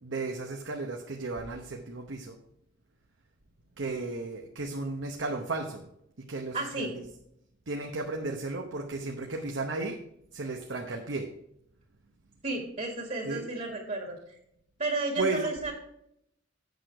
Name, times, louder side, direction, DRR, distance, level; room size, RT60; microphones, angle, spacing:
voice 1, 0.0-2.4 3.8-5.8 6.2-7.1 7.7-10.0 10.3-11.3 13.2-13.5 15.2-15.5, right 3 dB, 75° right, 2 dB, 0.9 m, -34 dB
voice 2, 6.5-6.9 12.4-14.1 14.8-15.7, right 2 dB, 45° right, 1 dB, 2.0 m, -32 dB
8.4 x 6.5 x 4.6 m, 0.76 s
head